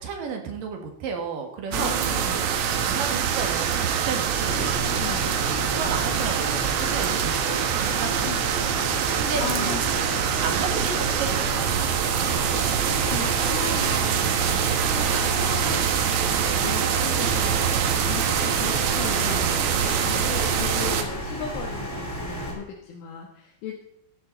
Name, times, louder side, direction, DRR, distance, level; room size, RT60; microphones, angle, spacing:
voice 1, 0.0-1.9 2.3-2.5 2.8-4.9 5.7-8.5 9.2-9.7 10.3-11.8 12.3-12.7, right 5 dB, 55° right, 3 dB, 2.7 m, -33 dB
voice 2, 1.7-2.5 5.0-5.4 8.2-8.4 9.0-10.4 12.5-12.6 13.1-16.3 16.6-17.6 18.0-23.8, left 7 dB, 80° left, -1 dB, 4.0 m, -37 dB
sound 1, 1.7-21.0, right 8 dB, 90° right, 4.0 m, -24 dB
sound 2, 4.4-22.5, equal, 5° left, 2.8 m, -34 dB
16.0 x 10.5 x 4.0 m, 0.79 s
omnidirectional pair, 5.7 m